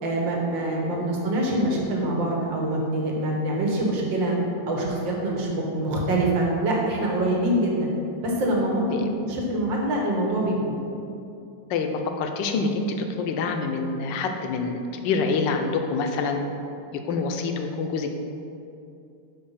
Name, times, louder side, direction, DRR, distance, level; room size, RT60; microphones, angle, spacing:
voice 1, 0.0-4.4 4.7-7.9 8.2-10.8, right 1 dB, 90° right, -2 dB, 1.9 m, -25 dB
voice 2, 11.7-16.4 17.0-18.2, left 4 dB, 80° left, 5 dB, 1.3 m, -26 dB
5.4 x 5.2 x 5.6 m, 2.6 s
omnidirectional pair, 2.0 m